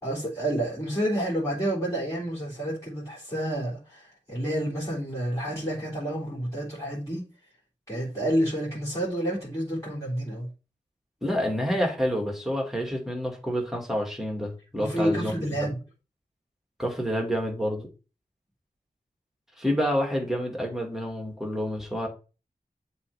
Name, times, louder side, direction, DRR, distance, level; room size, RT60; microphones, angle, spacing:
voice 1, 0.0-7.2 7.9-10.5 14.8-15.8, right 1 dB, 20° left, 3.5 m, -29 dB
voice 2, 11.2-15.3 16.8-17.9 19.6-22.1, equal, ahead, 2.1 m, -28 dB
7.3 x 3.2 x 5.7 m
wide cardioid pair, 65°, 16 cm